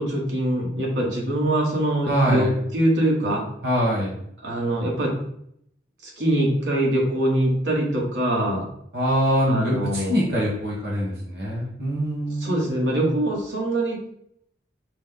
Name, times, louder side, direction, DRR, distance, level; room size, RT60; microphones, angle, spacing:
voice 1, 0.0-2.5 2.7-3.4 4.4-5.1 6.0-8.6 9.5-10.2 12.4-14.1, right 1 dB, 85° right, -2 dB, 1.3 m, -23 dB
voice 2, 2.1-2.5 3.6-4.1 8.9-12.6, equal, 60° right, -4 dB, 1.4 m, -23 dB
5.1 x 2.2 x 3.8 m, 0.72 s
head